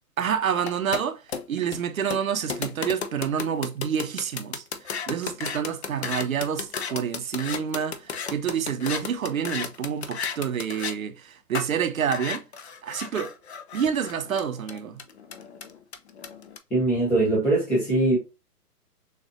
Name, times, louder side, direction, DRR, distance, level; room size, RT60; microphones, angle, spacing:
voice 1, 0.2-1.2 1.5-12.4 12.8-13.3 13.7-15.0, right 8 dB, 60° right, 0.8 m, -28 dB
sound 1, 0.6-11.0 11.5-11.7 12.1-16.6, left 6 dB, 45° left, 0.7 m, -33 dB
voice 2, 16.7-18.2, right 2 dB, 5° left, 0.7 m, -22 dB
6.5 x 2.5 x 2.6 m
figure-of-eight pair, 135°, 48 cm